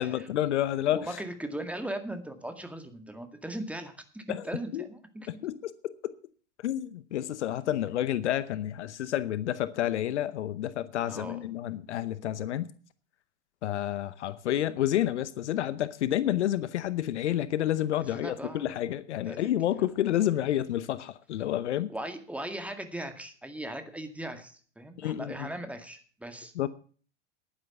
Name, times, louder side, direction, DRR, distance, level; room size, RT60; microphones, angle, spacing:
voice 1, 0.0-1.1 4.3-4.4 4.7-4.9 5.3-6.1 6.6-12.7 13.6-21.9 25.0-25.5 26.5-26.7, left 12 dB, 70° left, 0.9 m, -29 dB
voice 2, 0.9-5.3 11.1-11.4 18.1-18.7 19.3-19.9 21.9-26.5, right 1 dB, 5° right, 2.0 m, -39 dB
11.0 x 10.0 x 6.9 m
figure-of-eight pair, 90°, 36 cm